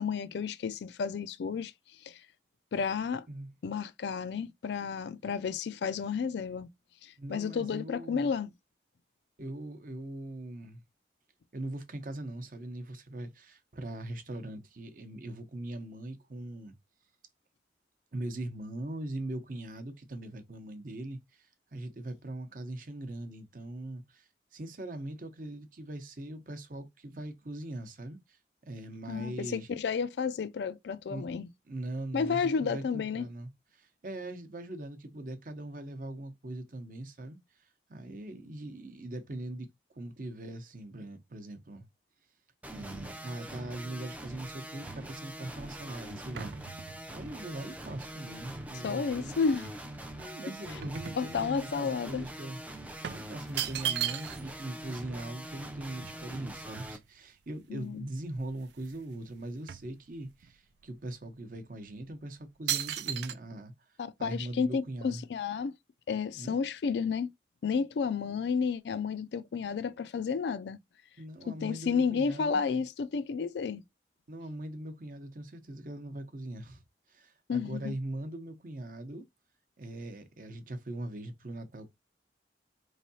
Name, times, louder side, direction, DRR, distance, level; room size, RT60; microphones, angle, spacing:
voice 1, 0.0-1.7 2.0-2.2 2.7-3.3 3.6-6.7 7.0-8.5 29.1-31.5 32.1-33.3 48.8-49.7 51.2-52.2 57.7-58.1 64.0-65.7 66.1-67.3 67.6-70.8 71.5-73.8 77.5-77.9, left 5 dB, 75° left, 0.3 m, -31 dB
voice 2, 7.2-8.3 9.4-10.8 11.5-16.7 18.1-29.7 31.1-31.2 31.7-37.4 37.9-41.9 42.7-46.5 47.1-49.4 50.2-52.6 53.1-63.7 64.2-65.2 66.4-66.6 71.2-72.6 74.3-76.8 77.1-79.2 79.8-81.9, right 1 dB, 50° right, 0.7 m, -41 dB
sound 1, 42.6-57.0, right 1 dB, 10° right, 0.4 m, -44 dB
sound 2, 44.3-49.2 49.6-51.8 52.1-52.3 53.0-54.6 54.9-55.0 55.2-57.4 57.9-58.0 58.3-59.0 59.3-60.5 61.1-61.3 61.9-62.2 62.7-63.3, right 11 dB, 75° right, 0.4 m, -38 dB
4.5 x 3.2 x 2.7 m
head